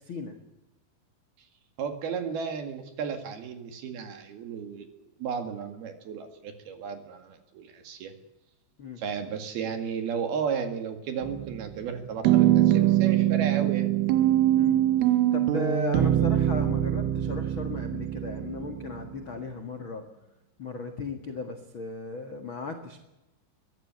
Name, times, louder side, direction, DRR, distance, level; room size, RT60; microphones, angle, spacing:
voice 1, 0.1-0.4 8.8-9.0 14.5-14.8 15.3-20.0 20.6-23.0, left 4 dB, 80° left, 5 dB, 1.1 m, -36 dB
voice 2, 1.8-8.1 9.0-13.9, right 6 dB, 60° right, 7 dB, 3.6 m, -34 dB
sound 1, 11.2-11.8 12.3-19.2, right 12 dB, 85° right, 3.6 m, -23 dB
23.0 x 15.5 x 9.5 m, 0.96 s
omnidirectional pair, 5.5 m